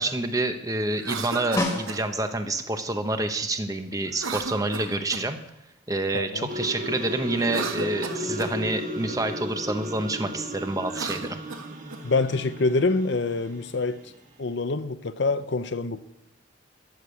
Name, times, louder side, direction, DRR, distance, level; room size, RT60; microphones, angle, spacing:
voice 1, 0.0-5.4 5.9-11.4, right 2 dB, 15° right, 0.8 m, -28 dB
Cough, 0.9-2.0 4.1-5.4 7.3-8.6 10.8-12.0, right 4 dB, 85° right, 1.0 m, -35 dB
Snare drum, 1.6-2.5 6.9-7.0, left 1 dB, 15° left, 1.7 m, -29 dB
voice 2, 6.1-6.5 12.0-14.0 14.4-16.0, left 3 dB, 60° left, 0.6 m, -26 dB
sound 1, 6.5-13.6, equal, 40° right, 1.5 m, -35 dB
14.0 x 6.6 x 7.9 m
head